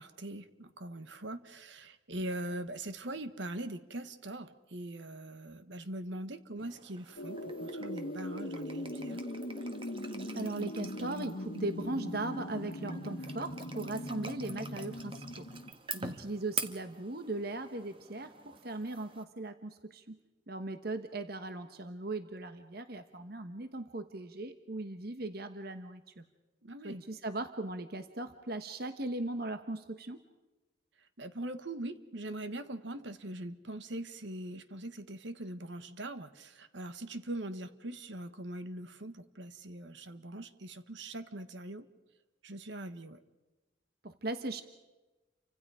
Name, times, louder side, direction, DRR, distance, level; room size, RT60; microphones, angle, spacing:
voice 1, 0.0-9.2 15.9-16.2 26.6-27.1 31.2-41.9 42.4-43.2, right 1 dB, 65° right, 11 dB, 1.4 m, -42 dB
sound 1, 6.6-19.2, right 4 dB, 25° right, 1.5 m, -46 dB
sound 2, 7.2-15.7, left 1 dB, 60° left, 1.6 m, -40 dB
voice 2, 10.3-15.5 15.9-20.2 20.5-26.2 26.8-30.2 44.0-44.6, right 2 dB, 50° right, 9 dB, 1.2 m, -38 dB
29.5 x 25.5 x 4.9 m, 1.1 s
head